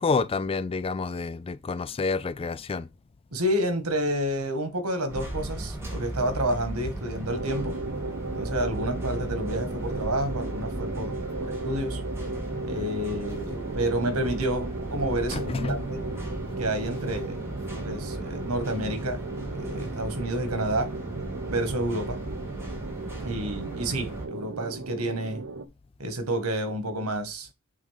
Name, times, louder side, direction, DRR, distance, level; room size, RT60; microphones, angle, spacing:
voice 1, 0.0-2.9 15.3-15.8, left 4 dB, 25° left, 0.3 m, -28 dB
voice 2, 3.3-7.8 8.4-11.1 11.4-12.0 12.6-16.0 16.6-17.4 17.7-19.2 19.5-20.9 21.5-22.2 23.2-25.4 26.0-27.5, right 1 dB, 85° right, 1.7 m, -29 dB
sound 1, 5.1-24.3, right 1 dB, 10° right, 2.4 m, -36 dB
sound 2, 7.3-25.7, right 3 dB, 65° right, 0.6 m, -36 dB
8.5 x 3.6 x 3.5 m
head